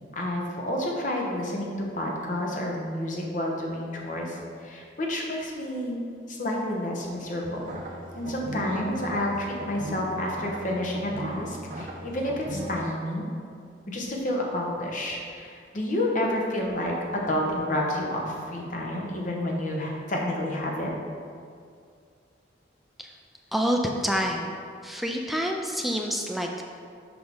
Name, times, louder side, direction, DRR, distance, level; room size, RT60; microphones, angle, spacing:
voice 1, 0.1-6.0 6.3-7.6 8.1-13.3 13.9-20.9, left 1 dB, 45° left, -1 dB, 0.9 m, -29 dB
sound 1, 7.4-12.7, right 1 dB, 45° right, 0.8 m, -38 dB
voice 2, 23.5-24.5 24.8-26.6, equal, ahead, 1 dB, 0.3 m, -27 dB
6.0 x 5.2 x 3.6 m, 2.3 s
head